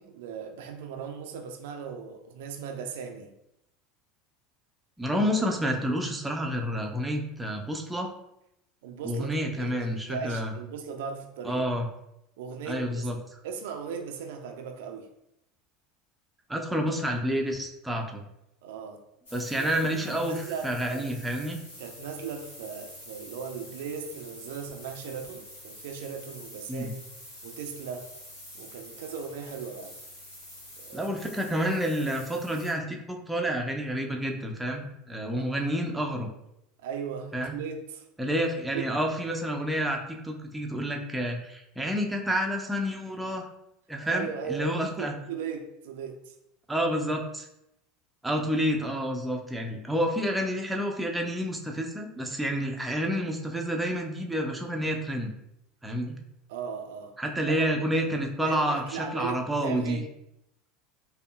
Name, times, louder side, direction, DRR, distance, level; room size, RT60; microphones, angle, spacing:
voice 1, 0.0-3.3 8.8-11.6 12.4-13.1 13.4-15.1 18.6-19.0 19.6-19.8 20.0-21.1 21.8-27.0 27.4-28.1 28.5-30.0 30.8-31.1 35.4-35.5 36.8-38.1 38.7-38.8 44.0-46.4 56.5-57.1 57.5-57.7 58.4-60.0, right 6 dB, 60° right, 3 dB, 0.4 m, -38 dB
voice 2, 5.0-8.1 9.0-10.5 11.4-11.9 12.7-13.4 16.5-18.2 19.3-21.6 26.7-26.9 30.9-36.3 37.3-37.6 38.2-43.4 43.9-45.2 46.7-47.5 48.2-55.3 55.8-56.2 57.2-60.0, equal, 5° right, 1 dB, 0.5 m, -29 dB
sound 1, 19.3-32.7, left 1 dB, 65° left, 1.2 m, -47 dB
5.1 x 2.1 x 2.3 m, 0.82 s
figure-of-eight pair, 75°, 0 cm